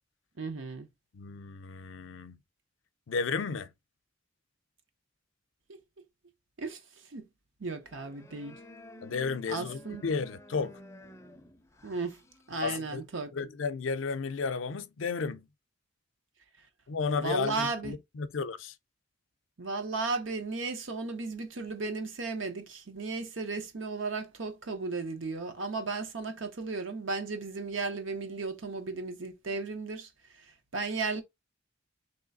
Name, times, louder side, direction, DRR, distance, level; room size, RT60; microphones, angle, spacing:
voice 1, 0.4-0.9 6.6-6.8 7.1-7.3 7.6-8.6 9.5-10.0 11.8-12.2 12.5-13.3 17.2-18.0 19.6-30.1 30.7-31.2, right 3 dB, 75° right, 0.9 m, -35 dB
voice 2, 1.1-2.4 3.1-3.7 9.0-10.8 12.6-13.0 13.3-15.5 16.9-18.7, left 5 dB, 80° left, 0.5 m, -33 dB
sound 1, 7.8-13.0, left 1 dB, 15° left, 0.5 m, -52 dB
3.2 x 3.0 x 3.9 m
head